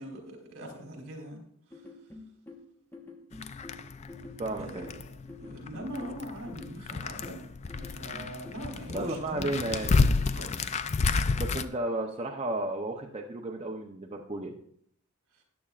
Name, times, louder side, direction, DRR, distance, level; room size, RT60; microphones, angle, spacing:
voice 1, 0.0-1.9 4.6-4.9 5.4-7.5 7.8-9.8 10.0-10.9 15.3-15.4, equal, 65° right, 1 dB, 3.5 m, -42 dB
sound 1, 1.7-9.9, left 2 dB, 10° left, 1.0 m, -48 dB
sound 2, 3.3-11.7, left 4 dB, 30° left, 0.3 m, -30 dB
voice 2, 4.4-4.9 8.9-10.0 11.4-14.6, right 2 dB, 30° right, 1 dB, 0.6 m, -33 dB
14.0 x 10.0 x 2.4 m, 0.66 s
head